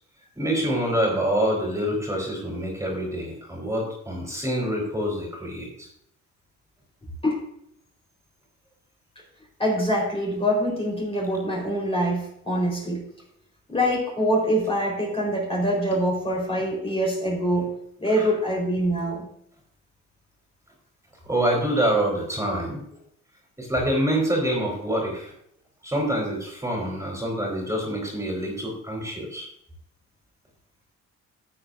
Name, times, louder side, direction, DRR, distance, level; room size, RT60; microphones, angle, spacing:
voice 1, 0.4-5.9 18.1-18.3 21.3-22.8 23.6-25.3 25.8-29.5, right 1 dB, 10° right, -1 dB, 4.0 m, -26 dB
voice 2, 9.6-13.0 13.7-17.7 18.0-19.3, equal, 20° left, -2 dB, 4.1 m, -24 dB
13.0 x 8.1 x 2.6 m, 0.72 s
cardioid pair, 90°, 30 cm